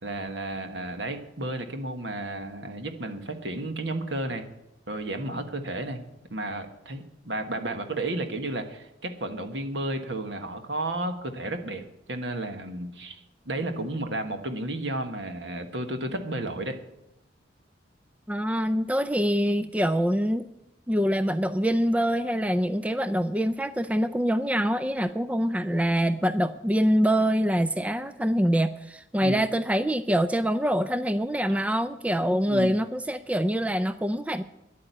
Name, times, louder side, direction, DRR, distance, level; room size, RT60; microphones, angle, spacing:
voice 1, 0.0-4.4 4.9-11.8 12.1-16.8 29.2-29.4 31.5-31.6 32.5-32.7, right 1 dB, 65° right, 6 dB, 1.5 m, -32 dB
voice 2, 18.3-20.4 20.9-34.4, equal, 5° right, 12 dB, 0.4 m, -25 dB
11.0 x 8.8 x 8.3 m, 0.90 s
head